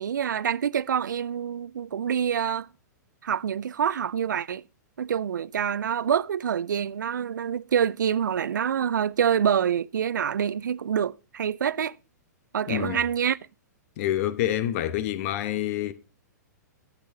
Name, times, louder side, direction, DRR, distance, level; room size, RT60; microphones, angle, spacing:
voice 1, 0.0-2.7 3.2-4.6 5.0-12.0 12.5-13.4, right 8 dB, 80° right, 0.4 m, -26 dB
voice 2, 12.7-13.0 14.0-15.9, left 12 dB, 50° left, 0.9 m, -27 dB
12.0 x 8.2 x 2.7 m
hypercardioid pair, 120°, 10 cm